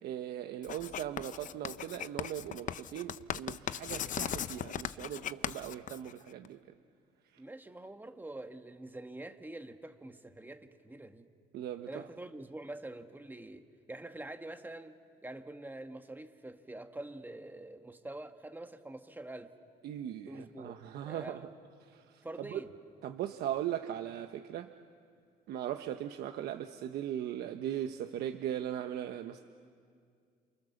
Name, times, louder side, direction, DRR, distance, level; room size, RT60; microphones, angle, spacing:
voice 1, 0.0-6.6 11.5-12.1 19.8-21.4 21.9-22.2 22.5-22.6 23.0-24.7 25.5-29.4, right 11 dB, 70° right, 6 dB, 1.1 m, -39 dB
Writing, 0.6-6.5, left 10 dB, 50° left, 0.7 m, -38 dB
voice 2, 7.4-11.3 11.9-19.5 20.3-21.5 22.2-22.7, right 2 dB, 10° right, 6 dB, 1.6 m, -46 dB
29.0 x 28.5 x 7.2 m, 2.2 s
cardioid pair, 110°, 17 cm